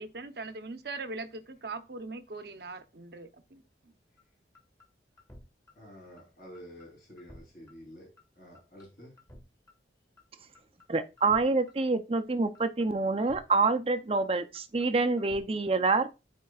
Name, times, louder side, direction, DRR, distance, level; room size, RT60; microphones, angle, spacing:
voice 1, 0.0-3.6, right 3 dB, 60° right, 0.8 m, -40 dB
sound 1, 4.2-4.3 4.5-4.9 5.2-5.4 5.7-5.8 6.2-6.3 6.5-6.9 7.2-7.4 7.7-7.8 8.2-8.3 8.5-8.9 9.2-9.4 9.7-9.8 10.2-10.3 10.5-10.9 11.2-11.4 11.7-11.8 12.2-12.3 12.5-12.9 13.2-13.4 13.7-13.8 14.2-14.3 14.5-14.9 15.2-15.4, left 1 dB, 20° left, 1.9 m, -52 dB
voice 2, 5.7-9.1, equal, 50° left, 3.4 m, -50 dB
voice 3, 10.9-16.1, right 3 dB, 30° right, 0.6 m, -27 dB
12.0 x 4.5 x 2.4 m
head